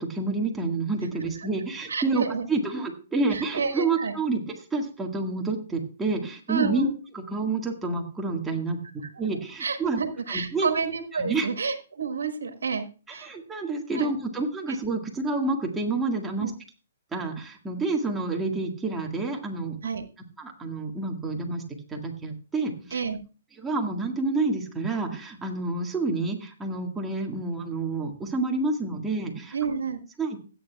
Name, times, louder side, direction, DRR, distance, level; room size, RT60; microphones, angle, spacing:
voice 1, 0.0-2.2 2.5-8.8 9.2-10.0 10.3-10.7 11.2-11.5 13.1-16.5 17.1-19.8 20.4-21.6 21.9-23.0 23.6-29.5 30.2-30.4, right 3 dB, 10° right, 1 dB, 1.8 m, -28 dB
voice 2, 1.9-2.5 3.3-4.1 6.5-6.9 9.6-12.8 13.1-13.3 13.9-14.1 14.7-14.8 16.4-16.5 19.8-20.0 22.9-23.2 29.5-30.0, right 5 dB, 85° right, 8 dB, 1.5 m, -29 dB
16.0 x 9.2 x 2.3 m, 0.35 s
hypercardioid pair, 145°, 0 cm